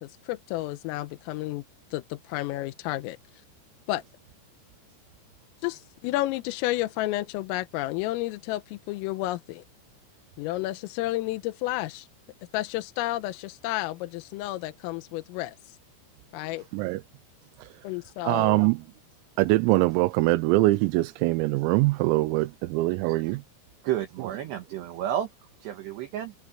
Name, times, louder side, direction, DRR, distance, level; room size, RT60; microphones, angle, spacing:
voice 1, 0.0-1.7 1.9-3.2 3.9-4.0 5.6-9.6 10.4-12.1 12.5-15.8 16.3-16.6 17.8-18.7, left 17 dB, 85° left, 3.5 m, -31 dB
voice 2, 18.3-18.8 19.4-23.4, right 20 dB, 90° right, 3.5 m, -23 dB
voice 3, 23.8-25.3 25.6-26.3, right 11 dB, 70° right, 3.0 m, -31 dB
omnidirectional pair, 6.0 m